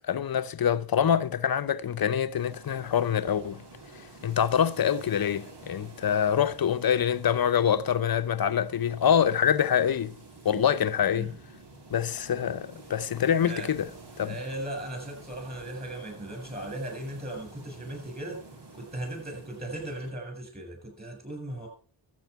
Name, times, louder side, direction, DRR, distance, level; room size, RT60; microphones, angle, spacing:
voice 1, 0.1-3.6 4.2-10.1 10.4-11.3 11.9-13.9 14.2-14.4, left 8 dB, 55° left, 0.8 m, -25 dB
sound 1, 2.4-20.1, right 3 dB, 65° right, 2.8 m, -49 dB
voice 2, 13.4-13.7 14.2-18.4 18.7-21.7, right 1 dB, 20° right, 6.9 m, -37 dB
13.5 x 7.8 x 4.6 m
cardioid pair, 55°, 44 cm